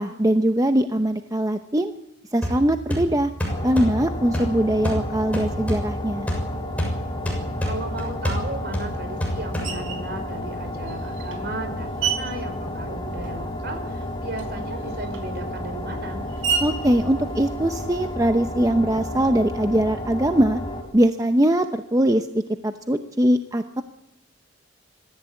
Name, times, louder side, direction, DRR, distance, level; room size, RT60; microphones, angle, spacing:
voice 1, 0.0-1.9 2.3-3.3 3.6-6.3 16.6-20.6 20.9-23.8, right 1 dB, 15° right, 7 dB, 0.8 m, -21 dB
sound 1, 2.4-10.1, equal, 5° left, 6.6 m, -29 dB
sound 2, 3.5-20.8, left 1 dB, 25° left, 3.3 m, -32 dB
voice 2, 7.6-16.2, right 2 dB, 55° right, 6 dB, 5.0 m, -35 dB
Screech, 9.6-10.1 10.9-13.6 13.8-18.1, right 6 dB, 90° right, 4.4 m, -32 dB
24.5 x 14.5 x 8.4 m, 0.88 s
head